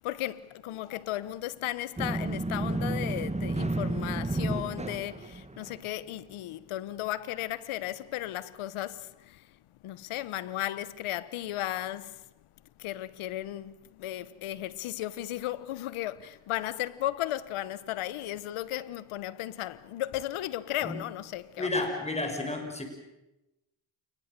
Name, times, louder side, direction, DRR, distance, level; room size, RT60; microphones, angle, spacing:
voice 1, 0.0-9.5 9.8-12.2 12.8-21.7, left 14 dB, 85° left, 1.2 m, -35 dB
sound 1, 2.0-5.9, right 2 dB, 15° right, 1.9 m, -31 dB
voice 2, 21.6-22.9, left 2 dB, 15° left, 5.8 m, -31 dB
28.5 x 20.0 x 6.8 m
cardioid pair, 70°, 48 cm